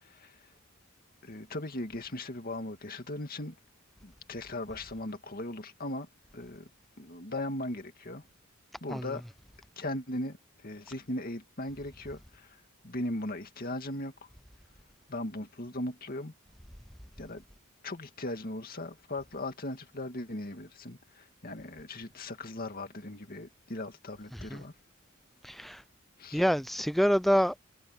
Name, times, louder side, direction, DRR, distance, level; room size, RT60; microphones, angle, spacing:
voice 1, 0.0-0.4 1.2-3.5 4.0-6.1 6.3-6.7 7.0-8.2 8.8-9.2 9.8-14.1 15.1-16.3 17.2-17.4 17.8-24.7 26.2-26.4, left 1 dB, 45° left, 2.2 m, -38 dB
voice 2, 25.4-25.8 26.3-27.6, equal, ahead, 0.5 m, -26 dB
head